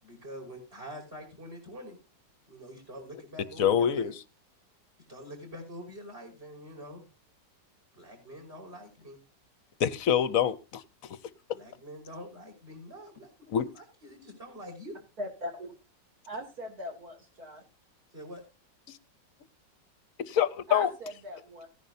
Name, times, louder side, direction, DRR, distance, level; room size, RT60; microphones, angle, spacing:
voice 1, 0.0-2.0 2.5-4.1 5.1-7.0 7.9-9.2 11.5-13.3 13.6-14.9 18.1-18.4, equal, 30° right, 1 dB, 5.8 m, -45 dB
voice 2, 3.6-4.1 9.8-10.8 11.1-11.2 13.5-13.7 18.9-19.0 20.3-20.9, left 9 dB, 60° left, 15 dB, 0.9 m, -25 dB
voice 3, 15.2-15.7 16.2-17.6 20.7-21.7, equal, 55° right, 2 dB, 3.3 m, -39 dB
17.0 x 10.5 x 2.7 m, 0.29 s
omnidirectional pair, 1.9 m